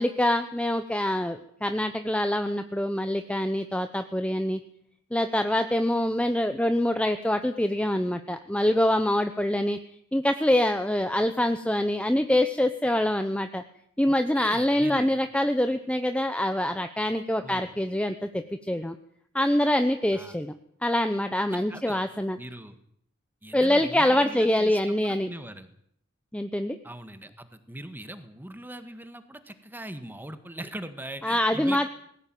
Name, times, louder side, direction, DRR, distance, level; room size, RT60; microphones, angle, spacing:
voice 1, 0.0-4.6 5.1-9.8 10.1-13.6 14.0-19.0 19.3-20.5 20.8-22.4 23.5-25.3 26.3-26.8 31.2-31.9, left 1 dB, 5° left, 8 dB, 0.9 m, -25 dB
voice 2, 14.1-15.1 17.4-17.7 20.1-20.4 21.5-22.0 22.4-22.8 23.4-25.7 26.8-31.9, right 1 dB, 10° right, 10 dB, 1.8 m, -41 dB
20.0 x 16.5 x 9.2 m, 0.68 s
head